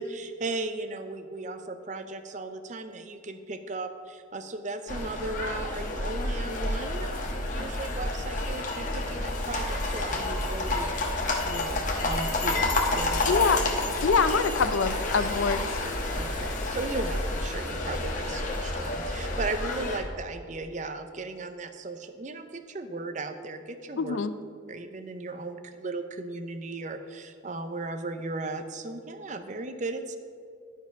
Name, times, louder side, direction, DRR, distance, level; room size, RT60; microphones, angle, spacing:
voice 1, 0.0-11.0 11.4-13.4 16.2-24.2 24.7-30.2, right 2 dB, 40° right, 8 dB, 0.5 m, -36 dB
sound 1, 4.9-20.0, left 2 dB, 40° left, 1.1 m, -29 dB
voice 2, 13.3-13.6 14.0-15.7 24.0-24.3, left 5 dB, 80° left, 12 dB, 0.5 m, -24 dB
11.5 x 4.7 x 5.8 m, 2.3 s
head